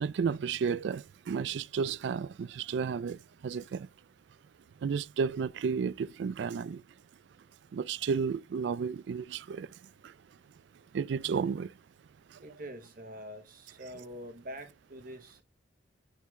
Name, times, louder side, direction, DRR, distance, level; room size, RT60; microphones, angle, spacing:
voice 1, 0.0-3.2 3.4-3.9 4.8-6.8 7.7-9.7 10.9-11.7, right 6 dB, 65° right, 0.3 m, -32 dB
voice 2, 12.4-15.4, equal, 45° right, 1.0 m, -45 dB
10.0 x 3.6 x 3.2 m
head